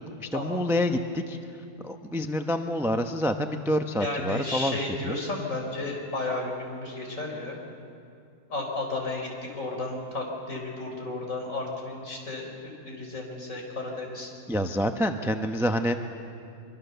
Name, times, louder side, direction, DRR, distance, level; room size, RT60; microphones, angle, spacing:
voice 1, 0.2-1.4 1.8-4.8 5.0-5.2 14.5-15.9, equal, ahead, 6 dB, 0.6 m, -27 dB
voice 2, 4.0-7.6 8.5-14.3, left 2 dB, 55° left, 0 dB, 4.6 m, -33 dB
24.5 x 24.0 x 6.9 m, 2.4 s
omnidirectional pair, 1.7 m